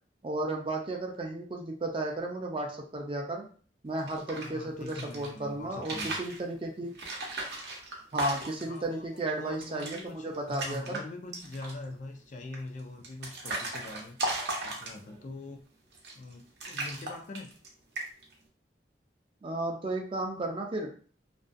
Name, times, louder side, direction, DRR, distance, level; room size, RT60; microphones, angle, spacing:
voice 1, 0.2-3.5 3.8-6.9 8.1-11.0 19.4-21.0, right 2 dB, 30° right, 1 dB, 0.4 m, -34 dB
sound 1, 3.9-5.3 5.7-6.4 6.9-8.8 9.2-9.3 9.5-10.0 10.3-11.0 11.3-11.8 12.5-15.2 15.9-16.3 16.6-17.7 17.9-18.3, right 2 dB, 65° right, 0.7 m, -36 dB
voice 2, 4.4-6.2 8.6-14.2 14.6-15.6 16.2-17.5, left 2 dB, 45° left, 3 dB, 0.3 m, -43 dB
2.5 x 2.2 x 2.4 m, 0.41 s
head